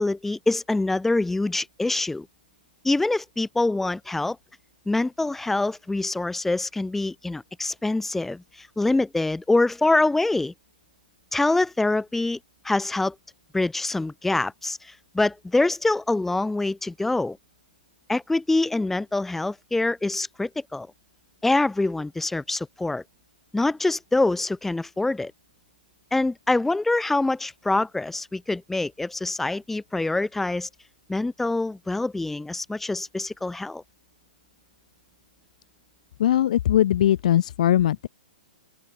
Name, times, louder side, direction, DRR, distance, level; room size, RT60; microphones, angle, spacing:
voice 1, 0.0-2.3 2.8-4.4 4.8-10.5 11.3-12.4 12.6-13.1 13.5-17.4 18.1-20.9 21.4-23.0 23.5-25.3 26.1-30.7 31.1-33.8, left 2 dB, 5° left, 3.3 m, -25 dB
voice 2, 36.2-38.1, left 11 dB, 55° left, 0.5 m, -20 dB
open air
figure-of-eight pair, 115°, 5 cm